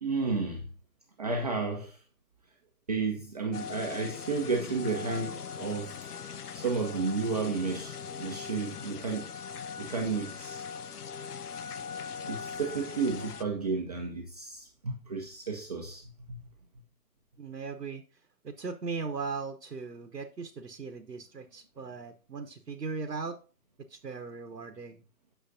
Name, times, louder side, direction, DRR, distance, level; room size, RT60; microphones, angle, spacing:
voice 1, 0.0-0.6 1.2-2.0 2.9-6.0 6.5-9.3 9.8-10.7 12.2-16.0 16.3-16.4, right 4 dB, 25° right, 0.7 m, -32 dB
sound 1, 3.5-13.4, left 6 dB, 70° left, 0.6 m, -40 dB
voice 2, 17.4-23.4 23.8-25.0, right 4 dB, 85° right, 1.0 m, -38 dB
9.2 x 6.5 x 2.6 m
figure-of-eight pair, 140°, 48 cm